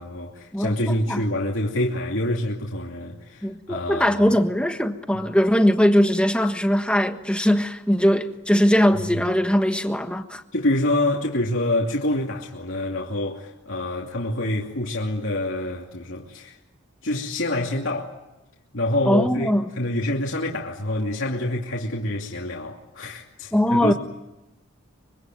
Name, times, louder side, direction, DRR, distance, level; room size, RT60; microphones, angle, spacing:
voice 1, 0.0-4.4 5.1-5.2 10.5-16.6 17.0-18.2 18.7-23.9, left 1 dB, 65° left, 2.7 m, -26 dB
voice 2, 0.5-1.2 3.4-10.4 19.1-19.7 23.5-23.9, equal, 5° left, 1.4 m, -20 dB
25.0 x 24.5 x 9.2 m
head